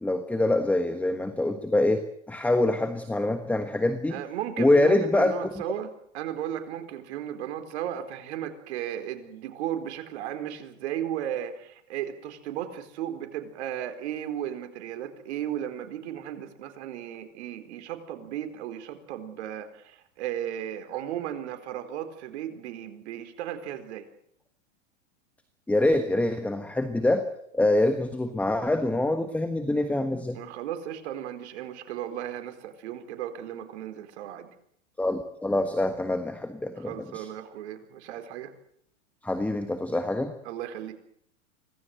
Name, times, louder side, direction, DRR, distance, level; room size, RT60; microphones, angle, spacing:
voice 1, 0.0-4.2 4.6-5.4 25.7-27.3 27.5-30.4 35.0-37.3 39.2-40.3, left 2 dB, 5° left, 9 dB, 1.4 m, -25 dB
voice 2, 4.1-5.9 6.1-24.0 30.3-34.5 36.8-38.5 40.4-40.9, right 11 dB, 60° right, 6 dB, 4.3 m, -35 dB
25.5 x 18.0 x 7.9 m, 0.70 s
supercardioid pair, 140°, 37 cm